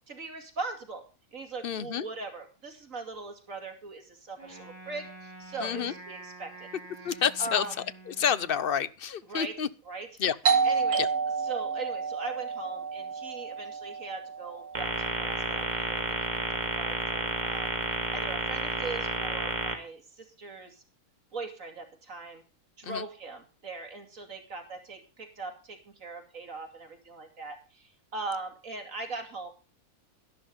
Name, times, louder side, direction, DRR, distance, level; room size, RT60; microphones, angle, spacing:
voice 1, 0.1-1.0 1.3-6.7 7.0-7.1 7.4-7.7 9.3-9.6 9.8-10.1 10.6-11.0 11.4-16.2 16.6-17.7 18.1-20.8 21.3-22.4 22.8-29.5, right 3 dB, 60° right, 2.9 m, -40 dB
voice 2, 1.6-2.0 5.6-5.9 7.0-7.7 8.1-9.7 10.2-10.4 11.0-11.1 22.8-23.0, left 8 dB, 50° left, 0.8 m, -28 dB
Wind instrument woodwind instrument, 4.4-8.8, right 2 dB, 10° left, 6.4 m, -48 dB
Doorbell, 10.5-15.8, right 5 dB, 80° right, 2.1 m, -30 dB
sound 1, 14.7-19.7, right 2 dB, 30° right, 2.1 m, -31 dB
12.5 x 11.5 x 5.3 m
omnidirectional pair, 1.5 m